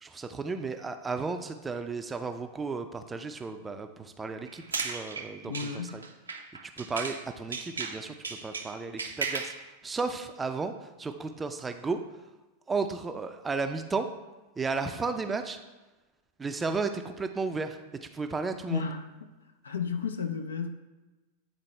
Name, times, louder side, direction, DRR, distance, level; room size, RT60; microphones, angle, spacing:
voice 1, 0.0-6.0 6.8-8.1 8.4-9.5 9.8-10.7 11.0-12.0 12.7-14.0 14.6-15.6 16.4-17.8 18.1-18.9, right 4 dB, 15° right, 7 dB, 0.5 m, -33 dB
sound 1, 4.5-7.2 7.5-9.6, right 4 dB, 75° right, 0.6 m, -36 dB
voice 2, 5.4-6.0 18.7-19.1 19.6-20.7, left 6 dB, 70° left, 6 dB, 0.6 m, -32 dB
9.1 x 4.0 x 3.3 m, 1.1 s
figure-of-eight pair, 90°, 0 cm